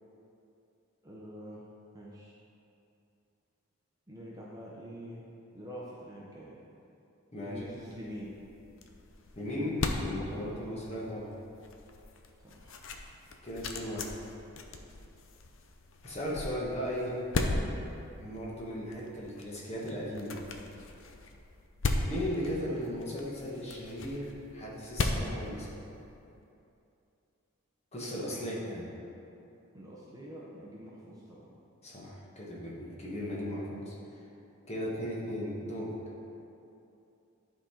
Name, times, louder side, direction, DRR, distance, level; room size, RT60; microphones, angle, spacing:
voice 1, 1.0-1.6 1.9-2.3 4.1-6.6 7.4-8.3 12.4-12.9 28.3-28.9 29.7-31.6, equal, 15° right, -5 dB, 0.8 m, -46 dB
voice 2, 7.3-7.6 9.3-11.3 13.4-14.2 16.0-17.2 18.2-20.5 22.0-25.8 27.9-28.9 31.8-33.9 34.7-36.0, equal, 30° left, -5 dB, 1.3 m, -36 dB
sound 1, 7.5-26.3, left 2 dB, 60° left, 0.6 m, -38 dB
11.0 x 3.9 x 4.3 m, 2.7 s
head